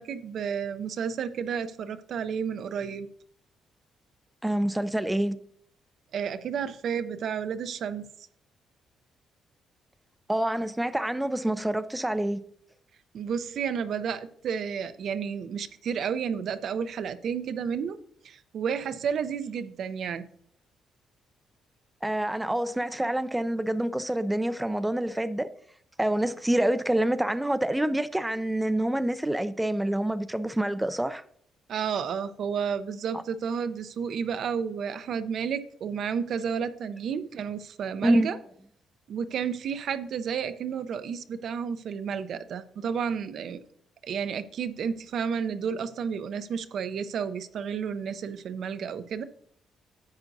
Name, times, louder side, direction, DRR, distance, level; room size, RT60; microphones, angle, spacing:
voice 1, 0.0-3.1 6.1-8.1 13.1-18.0 18.2-20.2 31.7-38.4 39.1-43.6 44.0-49.2, right 7 dB, 65° right, 0.5 m, -31 dB
voice 2, 4.4-5.4 10.3-12.4 22.0-25.5 26.0-31.2 33.1-33.2 38.0-38.3, right 1 dB, 10° right, 0.4 m, -27 dB
10.5 x 7.7 x 2.6 m
cardioid pair, 90°, 0 cm